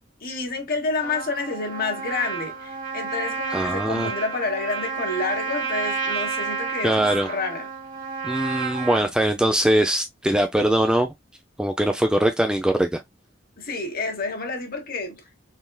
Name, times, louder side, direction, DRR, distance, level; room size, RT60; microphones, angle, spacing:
voice 1, 0.2-7.7 13.6-15.2, left 3 dB, 50° left, 1.4 m, -29 dB
Trumpet, 1.0-9.1, right 5 dB, 45° right, 1.5 m, -30 dB
voice 2, 3.5-4.1 6.8-7.3 8.2-11.1 11.6-13.0, right 1 dB, 5° right, 0.4 m, -21 dB
4.1 x 3.6 x 2.2 m
head